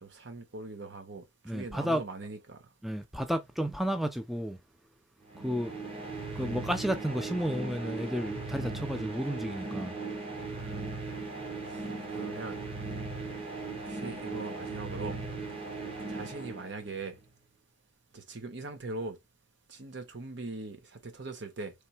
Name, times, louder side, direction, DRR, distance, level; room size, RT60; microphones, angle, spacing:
voice 1, 0.0-2.6 5.3-5.6 10.5-10.8 11.7-12.6 13.8-15.2 16.1-17.2 18.1-19.2 19.7-21.7, right 3 dB, 65° right, 1.0 m, -41 dB
voice 2, 1.4-2.0 2.8-4.6 5.4-5.8 6.4-9.9, equal, ahead, 0.4 m, -32 dB
sound 1, 5.3-17.2, right 3 dB, 30° right, 1.0 m, -38 dB
3.4 x 3.2 x 4.4 m
head